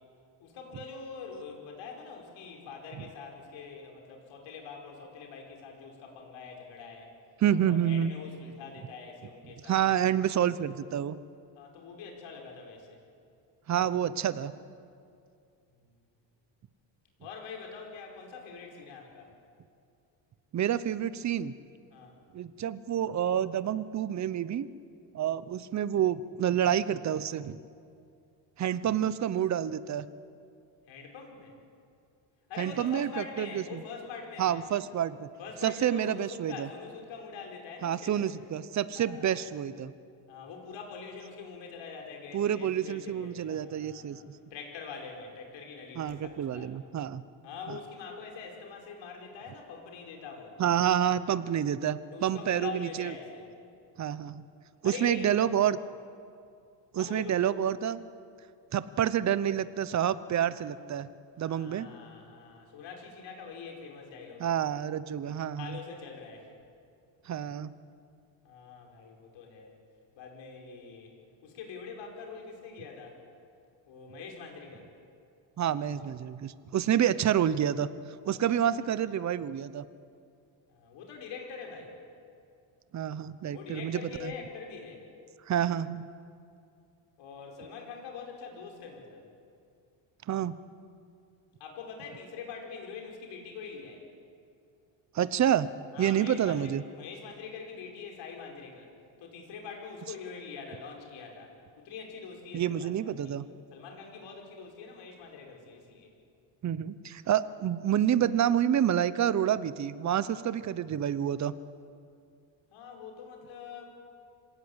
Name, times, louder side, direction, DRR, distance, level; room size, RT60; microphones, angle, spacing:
voice 1, 0.4-7.1 7.5-9.8 11.5-13.0 15.7-15.9 17.2-19.3 21.9-22.1 30.9-31.5 32.5-34.7 35.4-38.3 38.9-39.4 40.3-44.2 44.5-46.7 47.4-50.6 52.1-53.5 54.8-55.4 57.0-57.4 61.4-64.7 65.5-66.5 68.4-69.8 70.1-71.1 71.4-73.2 73.9-74.9 78.2-78.5 80.7-82.0 83.5-85.0 87.2-89.3 91.6-94.0 95.9-98.9 99.2-103.3 103.7-106.1 112.7-113.9, left 5 dB, 70° left, 1 dB, 5.2 m, -44 dB
voice 2, 7.4-8.1 9.7-11.2 13.7-14.5 20.5-21.5 22.3-24.7 25.1-27.6 28.6-30.0 32.6-33.8 34.4-35.3 35.6-36.7 37.8-39.9 42.3-44.2 46.0-47.2 50.6-53.1 54.0-54.4 54.8-55.8 56.9-58.1 58.7-61.1 61.4-61.9 64.4-65.8 67.3-67.7 75.6-77.9 78.2-79.8 82.9-84.3 85.5-86.0 90.3-90.5 95.1-95.7 96.0-96.8 102.5-103.4 106.6-111.5, right 10 dB, 35° right, 15 dB, 0.8 m, -28 dB
26.0 x 17.5 x 8.2 m, 2.4 s
cardioid pair, 130°, 47 cm